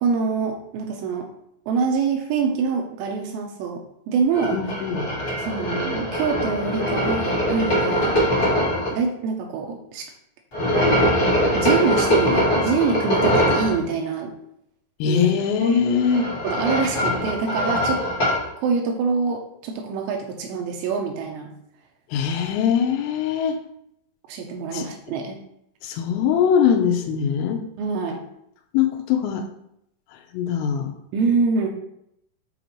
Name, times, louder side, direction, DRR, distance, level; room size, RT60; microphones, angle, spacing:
voice 1, 0.0-1.3 1.7-4.6 5.4-8.1 8.9-10.1 11.5-14.3 15.0-15.3 15.6-15.8 16.4-18.0 18.6-21.5 24.3-25.4 27.8-28.2 31.1-31.7, right 5 dB, 85° right, 2 dB, 2.6 m, -25 dB
sound 1, 4.3-8.9 10.5-13.7 15.9-18.4, equal, 40° left, 1.7 m, -22 dB
voice 2, 4.5-5.1 15.0-16.3 22.1-23.6 24.7-24.9 25.8-27.7 28.7-29.5 30.3-30.9, left 7 dB, 90° left, 3 dB, 3.2 m, -22 dB
8.0 x 4.0 x 3.0 m, 0.75 s
omnidirectional pair, 5.8 m